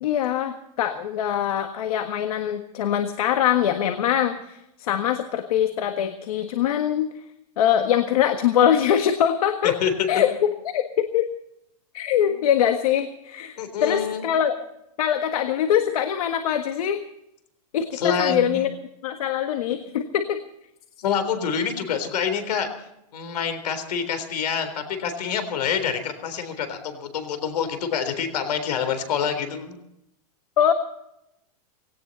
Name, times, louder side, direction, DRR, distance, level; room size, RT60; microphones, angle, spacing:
voice 1, 0.0-7.1 7.6-9.8 10.1-10.8 11.1-11.3 11.9-14.6 15.0-17.0 17.7-18.7 19.0-20.4 30.6-30.7, left 9 dB, 65° left, 7 dB, 1.6 m, -23 dB
voice 2, 13.6-14.2 17.9-18.7 21.0-22.7 23.1-29.8, left 7 dB, 80° left, 9 dB, 3.8 m, -26 dB
19.0 x 17.5 x 4.2 m, 0.83 s
supercardioid pair, 170°, 20 cm